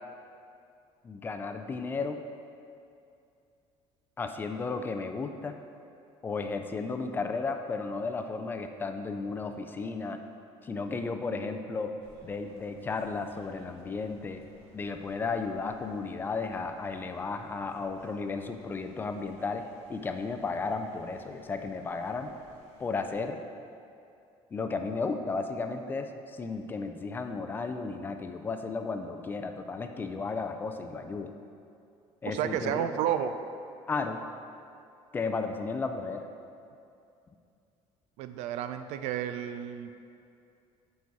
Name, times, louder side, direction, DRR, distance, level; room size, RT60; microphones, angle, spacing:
voice 1, 1.0-2.2 4.2-5.6 6.2-10.2 10.6-11.9 12.2-14.4 14.7-22.3 22.8-23.4 24.5-31.3 32.2-32.9 33.9-34.2 35.1-36.3, left 4 dB, 20° left, 7 dB, 0.3 m, -34 dB
sound 1, 12.0-23.3, right 1 dB, 65° right, 1.4 m, -58 dB
voice 2, 32.3-33.3 38.2-39.9, right 10 dB, 85° right, 10 dB, 0.4 m, -31 dB
9.4 x 4.1 x 4.6 m, 2.5 s
cardioid pair, 170°, 11 cm